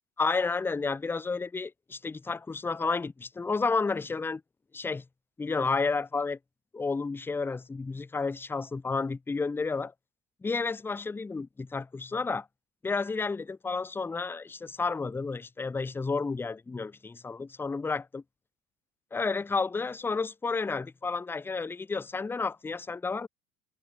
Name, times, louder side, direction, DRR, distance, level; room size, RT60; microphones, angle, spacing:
voice 1, 0.2-4.4 4.7-5.0 5.4-6.4 6.7-9.9 10.4-12.5 12.8-18.2 19.1-23.3, left 4 dB, 5° left, 0.3 m, -31 dB
figure-of-eight pair, 60°, 41 cm